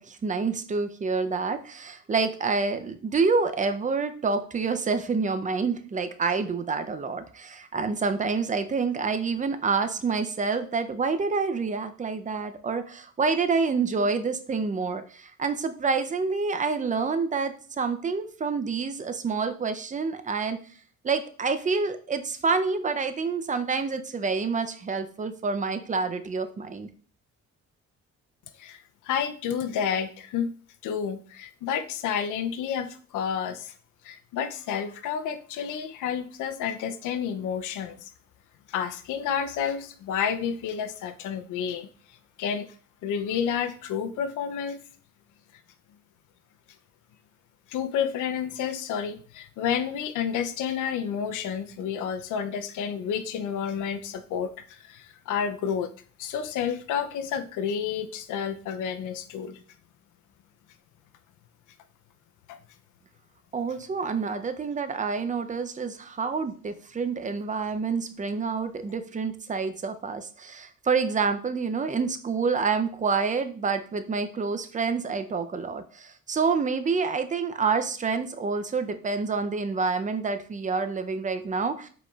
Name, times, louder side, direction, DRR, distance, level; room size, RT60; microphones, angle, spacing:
voice 1, 0.0-20.6 21.0-26.9 63.5-81.9, right 4 dB, 25° right, 9 dB, 0.5 m, -28 dB
voice 2, 29.0-30.5 30.8-33.7 34.0-38.0 38.7-41.9 42.4-42.7 43.0-44.8 47.7-55.9 56.2-59.6, left 7 dB, 85° left, 9 dB, 0.6 m, -30 dB
4.8 x 4.1 x 2.3 m, 0.42 s
cardioid pair, 90°, 30 cm